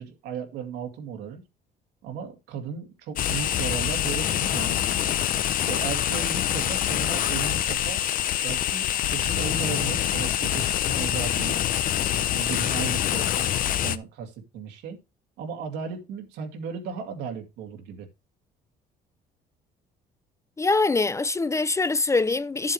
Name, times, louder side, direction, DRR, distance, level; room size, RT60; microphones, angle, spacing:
voice 1, 0.0-1.4 2.0-5.2 5.5-8.0 8.4-11.6 12.2-15.0 15.4-18.1, right 6 dB, 85° right, 2.4 m, -36 dB
sound 1, 3.2-14.0, left 11 dB, 55° left, 0.7 m, -25 dB
voice 2, 20.6-22.7, left 3 dB, 15° left, 0.4 m, -23 dB
11.5 x 7.5 x 3.1 m
cardioid pair, 110°, 17 cm